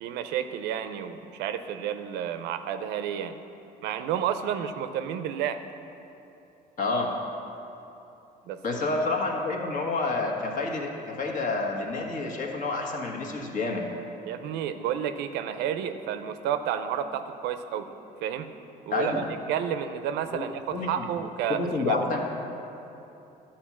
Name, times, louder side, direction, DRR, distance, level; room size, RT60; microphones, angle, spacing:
voice 1, 0.0-3.4 3.8-5.6 8.5-8.9 14.2-17.9 18.2-18.5 18.9-22.0, right 9 dB, 90° right, 9 dB, 0.6 m, -31 dB
voice 2, 6.8-7.1 8.6-13.9 18.9-19.2 20.3-20.4 20.7-21.1 21.5-22.2, left 3 dB, 50° left, 0 dB, 1.5 m, -29 dB
11.5 x 4.4 x 7.3 m, 2.9 s
cardioid pair, 110°, 17 cm